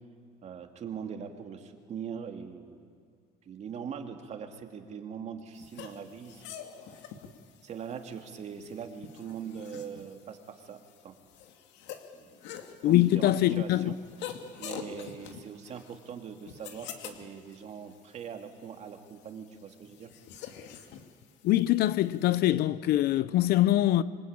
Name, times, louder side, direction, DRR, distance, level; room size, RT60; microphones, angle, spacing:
voice 1, 0.4-2.9 3.4-6.4 6.9-7.0 7.6-11.1 12.1-12.4 12.8-14.0 14.6-20.1, right 7 dB, 40° right, 2.3 m, -41 dB
sound 1, 5.6-22.4, left 9 dB, 85° left, 2.4 m, -47 dB
voice 2, 12.8-13.9 21.4-24.0, left 14 dB, 60° left, 0.7 m, -23 dB
27.0 x 24.5 x 8.8 m
cardioid pair, 165°, 18 cm